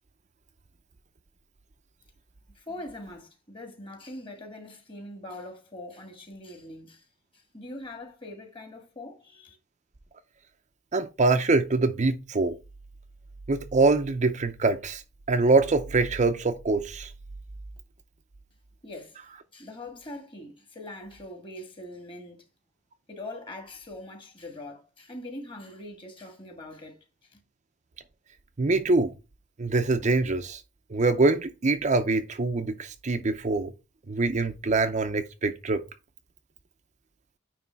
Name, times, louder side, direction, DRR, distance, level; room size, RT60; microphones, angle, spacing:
voice 1, 2.6-7.1 7.3-9.6 18.8-19.2 19.5-22.5 23.1-27.4, left 1 dB, 25° left, 1.7 m, -42 dB
voice 2, 10.9-12.6 13.5-15.0 15.3-17.1 28.6-29.1 29.6-30.6 30.9-33.7 34.1-35.8, right 3 dB, 35° right, 0.6 m, -24 dB
9.5 x 3.2 x 4.5 m
head